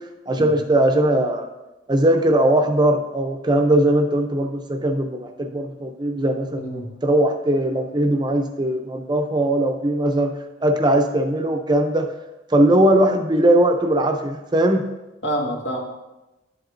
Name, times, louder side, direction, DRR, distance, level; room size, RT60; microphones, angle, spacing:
voice 1, 0.3-1.5 1.9-10.3 10.6-12.1 12.5-14.8, right 1 dB, 20° right, 5 dB, 0.5 m, -19 dB
voice 2, 6.6-6.9 15.2-15.8, equal, 85° left, -2 dB, 1.7 m, -27 dB
10.5 x 7.8 x 2.6 m, 1.0 s
head